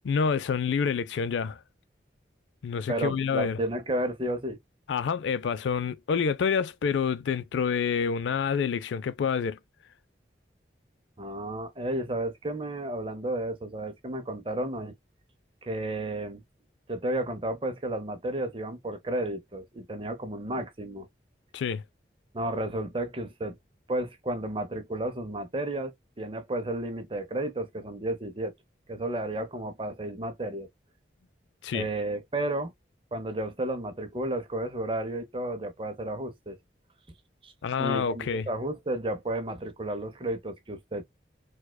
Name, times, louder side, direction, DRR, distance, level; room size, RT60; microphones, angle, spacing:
voice 1, 0.0-1.6 2.6-3.6 4.9-9.6 21.5-21.8 31.6-31.9 37.6-38.5, left 6 dB, 80° left, 0.4 m, -27 dB
voice 2, 2.9-4.6 11.2-14.9 15.6-16.4 16.9-21.1 22.3-23.6 23.9-28.5 28.9-30.7 31.7-32.7 33.1-36.6 37.4-37.5 37.8-41.0, right 1 dB, 30° right, 0.6 m, -32 dB
4.6 x 2.2 x 2.2 m
head